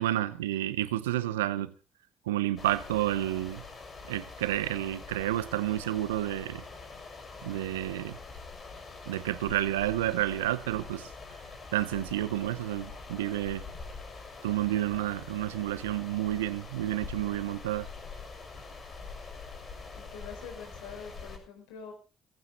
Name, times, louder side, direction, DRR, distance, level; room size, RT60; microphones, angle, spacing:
voice 1, 0.0-1.7 2.3-3.6 4.1-6.6 7.4-8.2 9.1-11.1 11.7-13.6 14.4-17.9, right 14 dB, 90° right, 0.8 m, -30 dB
sound 1, 2.6-21.4, left 4 dB, 45° left, 6.9 m, -45 dB
voice 2, 20.1-21.9, left 6 dB, 80° left, 4.6 m, -45 dB
18.5 x 15.5 x 4.0 m
hypercardioid pair, 55°, 0 cm